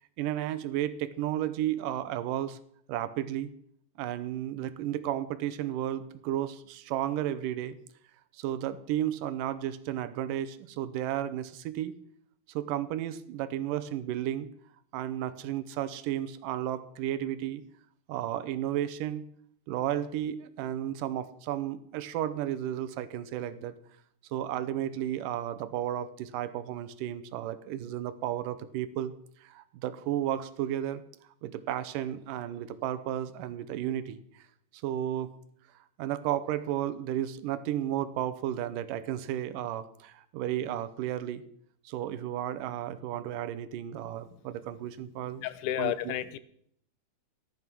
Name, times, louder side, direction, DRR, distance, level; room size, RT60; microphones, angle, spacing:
voice 1, 0.2-2.6 2.9-3.5 4.0-7.8 8.3-11.9 12.5-14.5 14.9-17.6 18.1-19.2 19.7-23.8 24.3-29.1 29.4-31.0 31.4-34.4 34.8-35.3 36.0-41.4 41.9-45.4 45.8-46.1, right 11 dB, 85° right, 12 dB, 2.4 m, -33 dB
voice 2, 45.4-46.4, left 12 dB, 80° left, 15 dB, 2.2 m, -31 dB
14.5 x 10.5 x 6.1 m, 0.66 s
omnidirectional pair, 3.7 m